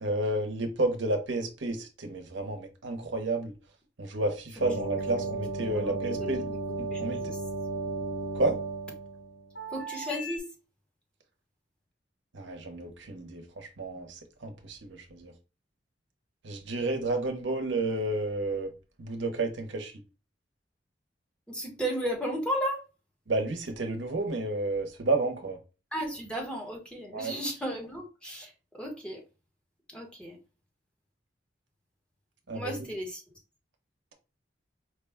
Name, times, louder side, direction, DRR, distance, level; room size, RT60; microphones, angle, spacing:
voice 1, 0.0-3.5 4.0-6.5 6.8-7.3 8.3-8.6 12.3-15.3 16.4-18.7 19.0-19.9 23.3-25.6 27.1-27.3 32.5-32.9, right 2 dB, 85° right, 0.8 m, -31 dB
sound 1, 4.6-10.4, right 2 dB, 85° left, 2.0 m, -35 dB
voice 2, 5.7-6.6 6.9-7.4 9.7-10.5 21.5-22.8 25.9-29.2 29.9-30.4 32.5-33.2, equal, 5° left, 1.0 m, -35 dB
4.7 x 2.2 x 3.4 m
head